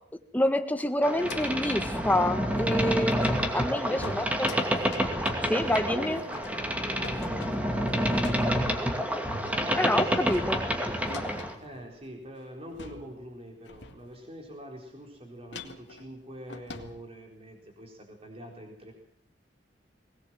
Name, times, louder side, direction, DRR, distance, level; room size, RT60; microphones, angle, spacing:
voice 1, 0.3-4.5 5.5-6.2 9.8-10.7, left 1 dB, 10° left, 7 dB, 1.5 m, -27 dB
Boat Water vehicle, 1.0-11.5, equal, 10° right, 2.5 m, -28 dB
sound 1, 1.1-1.7 2.1-2.2 2.5-8.9 9.3-9.5 9.8-12.0 12.4-12.5 12.7-13.4 13.6-14.3 15.5-17.0, left 3 dB, 75° left, 2.1 m, -46 dB
voice 2, 3.5-4.3 5.2-8.3 9.4-10.3 11.6-18.9, equal, 35° right, 1 dB, 4.2 m, -43 dB
21.0 x 19.5 x 7.6 m, 0.64 s
head